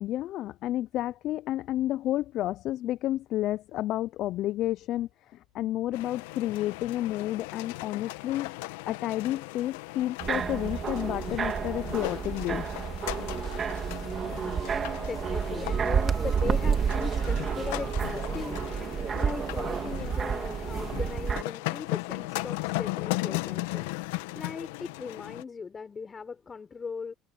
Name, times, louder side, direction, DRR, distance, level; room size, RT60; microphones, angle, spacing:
voice 1, 0.0-8.6 8.9-12.6, left 14 dB, 55° left, 0.5 m, -31 dB
sound 1, 5.9-25.4, left 22 dB, 75° left, 1.5 m, -37 dB
sound 2, 10.2-21.4, right 7 dB, 35° right, 2.2 m, -30 dB
voice 2, 14.1-23.9 24.3-27.1, left 5 dB, 25° left, 4.3 m, -39 dB
hypercardioid pair, 85°, 0 cm